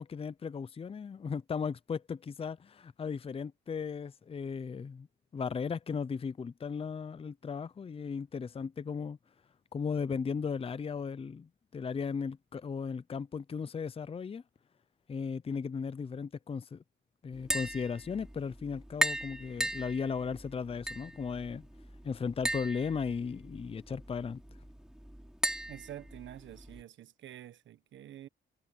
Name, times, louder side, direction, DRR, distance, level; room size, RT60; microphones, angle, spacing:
voice 1, 0.0-5.1 5.3-9.2 9.7-14.4 15.1-16.8 17.2-21.7 22.0-24.4, left 6 dB, 30° left, 0.6 m, -36 dB
Tap, 17.3-26.8, equal, 5° right, 3.0 m, -38 dB
voice 2, 25.7-28.3, right 12 dB, 70° right, 1.4 m, -48 dB
cardioid pair, 90°, 20 cm